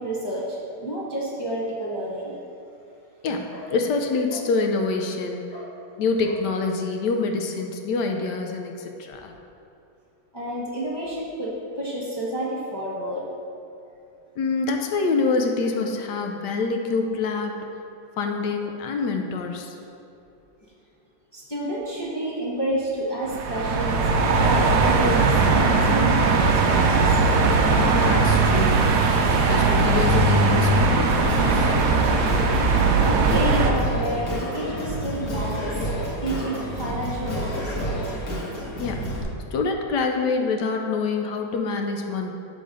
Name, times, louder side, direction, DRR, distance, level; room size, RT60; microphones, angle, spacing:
voice 1, 0.0-2.4 3.5-3.7 4.3-4.4 5.5-5.7 6.2-6.3 10.3-11.5 11.8-13.2 21.3-24.0 24.3-27.0 32.9-35.8 36.2-38.0, right 1 dB, 35° left, -7 dB, 0.4 m, -30 dB
voice 2, 3.2-5.5 6.0-9.3 14.4-17.5 18.2-19.7 27.9-28.8 29.3-31.7 38.8-39.0 39.5-42.3, left 4 dB, 75° left, 3 dB, 1.1 m, -26 dB
sound 1, 23.2-33.7, right 3 dB, 70° right, 1.1 m, -19 dB
Singing, 31.2-39.2, equal, 55° left, 1.5 m, -29 dB
6.7 x 3.8 x 5.0 m, 2.6 s
omnidirectional pair, 1.9 m